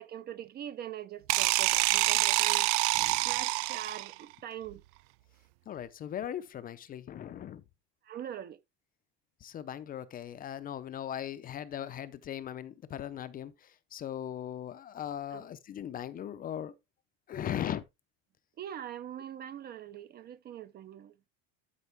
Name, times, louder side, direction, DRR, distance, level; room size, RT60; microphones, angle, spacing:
voice 1, 0.0-2.7 3.2-4.8 8.0-8.6 15.3-15.4 18.6-21.2, right 10 dB, 30° right, 0.5 m, -42 dB
sound 1, 1.3-4.2, right 23 dB, 80° right, 0.5 m, -26 dB
voice 2, 2.9-3.3 5.7-7.6 9.4-16.7 17.3-17.8, left 10 dB, 25° left, 0.6 m, -39 dB
12.5 x 5.3 x 3.4 m
cardioid pair, 170°, 33 cm